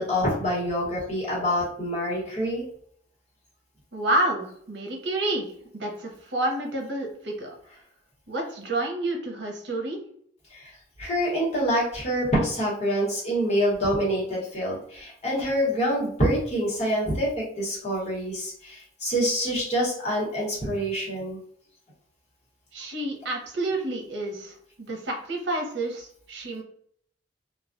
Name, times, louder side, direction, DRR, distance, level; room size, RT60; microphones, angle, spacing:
voice 1, 0.0-2.6 10.5-10.7 11.0-21.4, equal, 40° left, -6 dB, 1.1 m, -26 dB
voice 2, 3.9-7.5 8.3-10.0 22.7-26.6, right 1 dB, 85° right, 1 dB, 0.7 m, -29 dB
2.2 x 2.2 x 2.5 m, 0.62 s
head